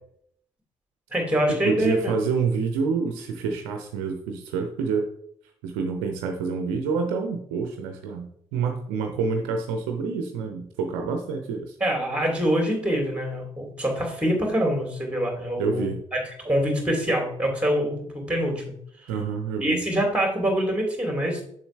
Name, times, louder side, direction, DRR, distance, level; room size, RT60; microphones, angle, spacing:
voice 1, 1.1-2.1 11.8-15.9 16.1-18.6 19.0-19.1 19.6-21.4, equal, 10° right, 0 dB, 2.8 m, -25 dB
voice 2, 1.6-5.1 5.6-11.8 15.6-16.0 19.1-19.8, right 5 dB, 70° right, 4 dB, 0.7 m, -27 dB
7.0 x 6.1 x 3.3 m, 0.68 s
figure-of-eight pair, 40°, 15 cm